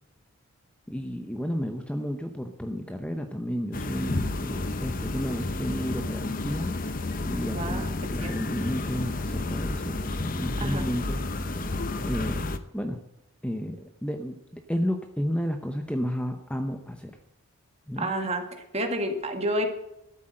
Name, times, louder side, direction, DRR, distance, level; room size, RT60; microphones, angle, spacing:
voice 1, 0.9-6.7 7.3-7.8 8.1-11.6 12.0-12.5 12.7-13.0 13.4-17.1 17.9-18.1, equal, 5° left, 5 dB, 0.8 m, -32 dB
sound 1, 3.7-12.6, left 2 dB, 40° left, 0.8 m, -31 dB
voice 2, 7.5-7.9 8.2-8.3 10.6-10.8 18.0-18.4 18.7-19.7, right 1 dB, 30° right, 5 dB, 1.7 m, -29 dB
13.0 x 8.3 x 7.6 m, 0.86 s
head